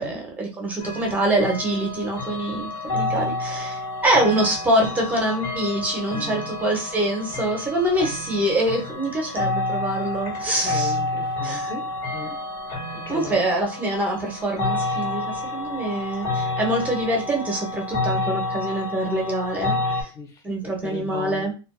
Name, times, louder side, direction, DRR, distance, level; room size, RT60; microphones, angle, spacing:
voice 1, 0.0-10.9 11.4-11.7 13.1-15.2 15.5-20.1 20.4-21.5, right 1 dB, 10° right, 0 dB, 0.7 m, -25 dB
sound 1, 0.8-20.0, left 2 dB, 40° left, 1.5 m, -29 dB
voice 2, 6.1-6.5 10.6-12.4 12.9-13.5 20.1-21.5, left 3 dB, 20° left, 2 dB, 0.7 m, -37 dB
2.5 x 2.3 x 2.2 m, 0.32 s
supercardioid pair, 140°, 14 cm